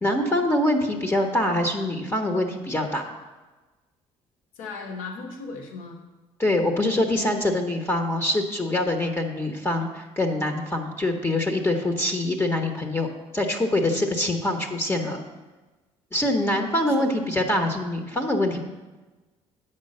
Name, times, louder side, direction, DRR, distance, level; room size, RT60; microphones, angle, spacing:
voice 1, 0.0-3.1 6.4-15.2 16.1-18.6, left 1 dB, 20° left, 4 dB, 1.2 m, -24 dB
voice 2, 4.5-6.0 13.9-14.0 16.9-17.1, left 4 dB, 85° left, 2 dB, 1.2 m, -37 dB
7.9 x 5.4 x 6.6 m, 1.2 s
supercardioid pair, 75°, 13 cm